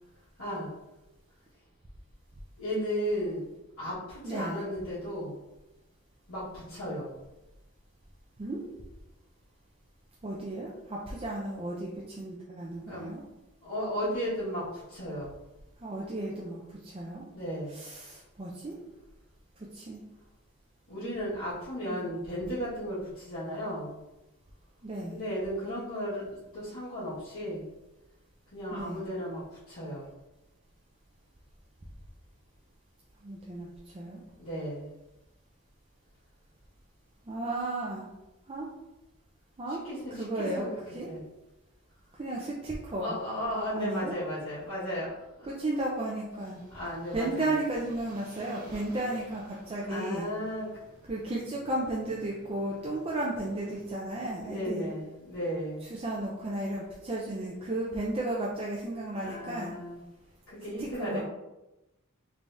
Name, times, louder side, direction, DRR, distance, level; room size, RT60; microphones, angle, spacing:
voice 1, 0.4-0.7 2.6-3.5 3.8-5.4 6.3-7.1 12.9-13.1 13.6-15.3 17.3-17.8 20.9-24.0 25.1-27.6 28.5-30.1 34.3-34.9 39.7-40.8 41.1-41.2 43.0-45.5 46.7-47.5 49.9-50.7 54.4-55.9 59.2-60.0 60.5-61.2, equal, 65° left, -13 dB, 1.4 m, -35 dB
voice 2, 4.2-4.6 8.4-8.6 10.2-13.2 15.8-17.2 17.7-18.8 19.6-20.0 21.9-22.0 24.8-25.2 28.7-29.0 33.2-33.7 33.9-34.2 37.3-38.0 38.5-38.7 39.6-39.8 40.2-41.1 42.2-43.2 43.7-44.2 45.5-46.6 47.1-50.3 51.1-54.9 55.9-59.8 60.8-61.2, right 1 dB, 25° right, -4 dB, 0.4 m, -34 dB
sound 1, 46.3-54.0, equal, 40° right, 0.9 m, -54 dB
3.4 x 3.3 x 2.6 m, 0.98 s
head